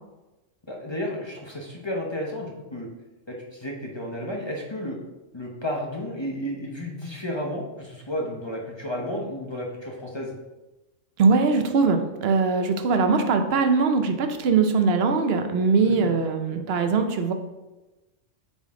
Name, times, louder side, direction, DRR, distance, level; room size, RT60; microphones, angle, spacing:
voice 1, 0.7-2.9 3.3-5.0 5.3-10.3 15.8-16.1, left 1 dB, 25° left, -1 dB, 0.9 m, -32 dB
voice 2, 11.2-17.3, right 4 dB, 60° right, 7 dB, 0.9 m, -21 dB
8.4 x 4.0 x 3.7 m, 1.1 s
omnidirectional pair, 1.3 m